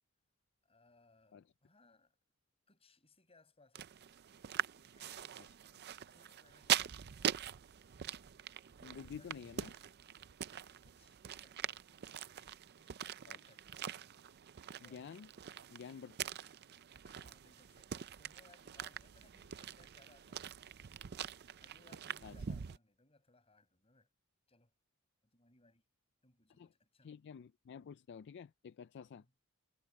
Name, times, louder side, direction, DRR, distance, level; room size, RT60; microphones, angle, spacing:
voice 1, 0.6-2.2 2.7-3.9 4.8-5.5 6.1-7.6 8.9-9.5 9.7-9.9 10.7-12.1 12.4-13.8 14.8-15.2 17.0-21.1 21.6-24.1 24.5-24.7 25.2-25.8 26.2-27.1 29.0-29.3, left 3 dB, 25° left, 6.4 m, -68 dB
sound 1, 3.8-22.8, right 9 dB, 50° right, 0.5 m, -43 dB
voice 2, 8.8-9.7 13.3-13.5 14.8-15.3 15.7-16.2 22.2-22.3 26.6-26.7 27.0-29.2, left 6 dB, 50° left, 0.3 m, -50 dB
head